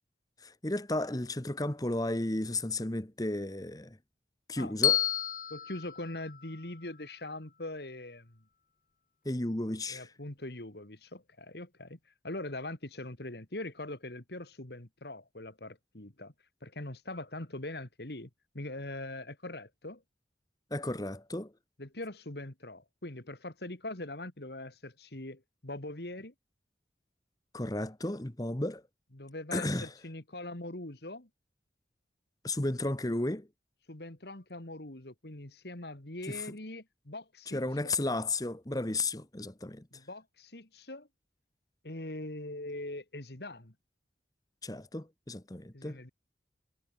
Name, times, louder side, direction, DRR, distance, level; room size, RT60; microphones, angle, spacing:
voice 1, 0.4-4.0 4.5-5.0 9.2-10.1 20.7-21.5 27.5-28.8 29.5-29.9 32.4-33.5 36.2-36.5 37.5-39.8 44.6-46.0, left 2 dB, 20° left, 1.2 m, -33 dB
Bell, 4.8-7.0, left 10 dB, 45° left, 0.8 m, -31 dB
voice 2, 5.5-8.4 9.9-12.0 12.2-16.3 16.6-18.3 18.5-20.0 21.8-26.3 29.1-31.3 33.9-37.6 39.9-41.1 41.8-43.7 45.7-46.1, left 2 dB, 60° left, 2.4 m, -42 dB
head